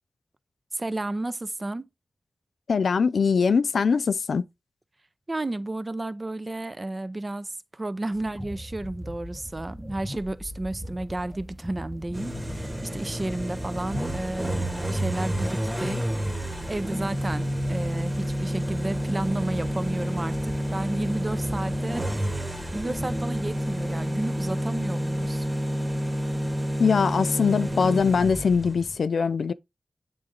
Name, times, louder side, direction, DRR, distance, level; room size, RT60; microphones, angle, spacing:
voice 1, 0.7-1.9 5.3-16.0 16.7-25.5, right 2 dB, 30° right, 0.5 m, -32 dB
voice 2, 2.7-4.4 26.8-29.5, left 5 dB, 90° left, 0.3 m, -22 dB
sound 1, 8.1-23.8, equal, 10° left, 0.8 m, -40 dB
sound 2, 12.1-29.0, equal, 10° right, 1.1 m, -29 dB
8.4 x 3.8 x 3.7 m
wide cardioid pair, 115°, 0 cm